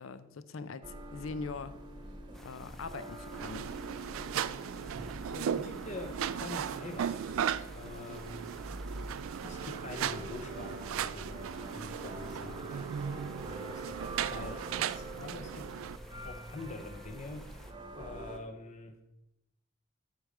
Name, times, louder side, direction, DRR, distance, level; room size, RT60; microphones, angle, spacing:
voice 1, 0.0-1.8 2.4-3.7 5.2-5.3, left 4 dB, 85° left, 14 dB, 0.6 m, -42 dB
sound 1, 0.8-18.4, right 1 dB, 25° right, 1.0 m, -45 dB
sound 2, 2.3-17.7, equal, ahead, 0.6 m, -57 dB
sound 3, 3.3-16.0, right 9 dB, 90° right, 0.3 m, -37 dB
voice 2, 5.3-8.5 9.4-15.7 16.2-18.9, left 2 dB, 35° left, 5 dB, 0.7 m, -45 dB
7.9 x 5.0 x 6.5 m, 0.90 s
head